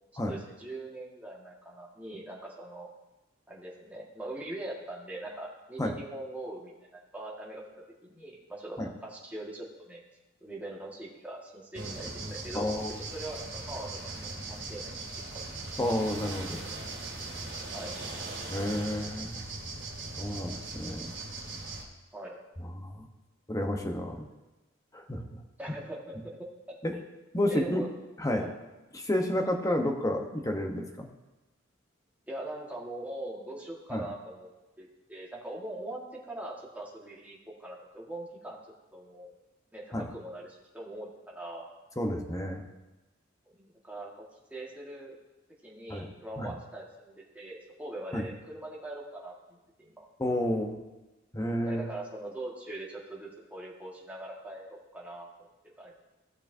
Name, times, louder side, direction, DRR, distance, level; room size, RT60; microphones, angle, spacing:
voice 1, 0.2-2.9 3.5-7.6 8.0-10.0 10.4-15.0 15.3-15.4 17.1-17.3 17.7-17.9 22.1-22.4 25.6-26.5 26.9-27.0 27.5-27.9 28.4-28.5 32.3-34.5 34.8-36.0 36.3-38.6 38.9-39.3 39.7-41.7 43.5-44.3 44.5-45.2 45.6-50.0 51.7-55.5 55.8-55.9, right 1 dB, 10° right, -4 dB, 1.7 m, -42 dB
sound 1, 11.7-21.8, right 3 dB, 65° right, 2.3 m, -39 dB
voice 2, 12.5-13.0 15.8-16.6 18.5-19.4 20.2-21.1 22.6-23.1 23.5-24.3 24.9-25.4 26.8-27.0 27.3-27.8 28.2-28.5 28.9-31.1 33.9-34.0 39.9-40.1 42.0-42.7 45.9-46.1 46.4-46.5 48.1-48.2 50.2-50.8 51.3-51.8, left 1 dB, 15° left, 3 dB, 0.9 m, -31 dB
16.0 x 6.8 x 2.7 m, 1.1 s
head